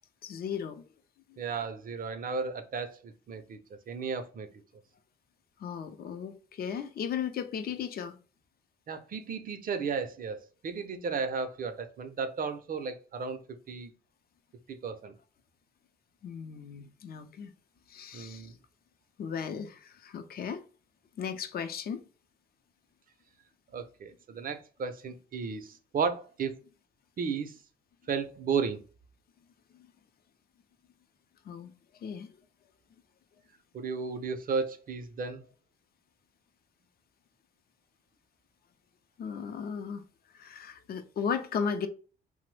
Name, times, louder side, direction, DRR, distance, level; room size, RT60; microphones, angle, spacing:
voice 1, 0.2-0.8 1.3-1.4 5.6-8.2 16.2-17.5 17.9-18.5 19.2-20.6 21.2-22.0 29.7-29.9 31.4-32.3 39.2-40.0 40.3-41.9, left 7 dB, 50° left, 0.5 m, -36 dB
voice 2, 1.4-3.6 3.9-4.5 8.9-13.9 14.7-15.1 18.1-18.6 23.7-26.6 27.2-27.6 28.1-28.8 33.7-35.4, right 5 dB, 45° right, 0.5 m, -34 dB
2.9 x 2.0 x 3.1 m
cardioid pair, 90°, 20 cm